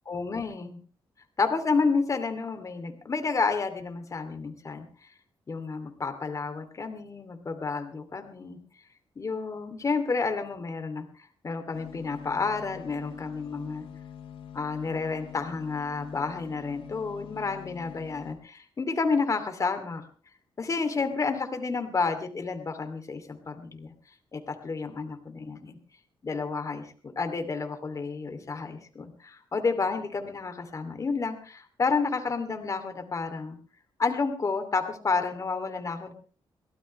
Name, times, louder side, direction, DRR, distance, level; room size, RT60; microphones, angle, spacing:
voice 1, 0.1-0.8 1.4-4.8 5.5-8.6 9.2-11.1 11.4-13.8 14.5-20.0 20.6-23.9 24.3-25.8 26.2-33.6 34.0-36.1, left 4 dB, 35° left, 7 dB, 2.7 m, -30 dB
sound 1, 11.7-18.3, left 9 dB, 80° left, 4.0 m, -45 dB
23.0 x 17.0 x 3.2 m, 0.40 s
wide cardioid pair, 125°, 9 cm